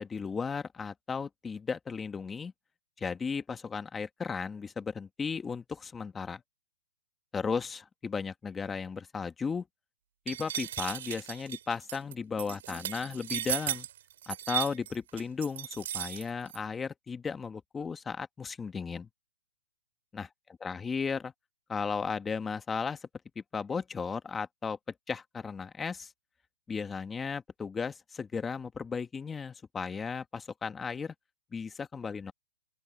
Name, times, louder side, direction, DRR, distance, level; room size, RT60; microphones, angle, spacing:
voice 1, 0.0-2.5 3.0-6.4 7.3-9.7 10.2-13.9 14.3-19.1 20.1-20.3 20.6-21.3 21.7-23.0 23.3-24.8 25.1-26.1 26.7-31.1 31.5-32.3, left 5 dB, 10° left, 1.5 m, -35 dB
sound 1, 10.3-16.6, right 12 dB, 55° right, 4.5 m, -36 dB
open air
hypercardioid pair, 145°, 0 cm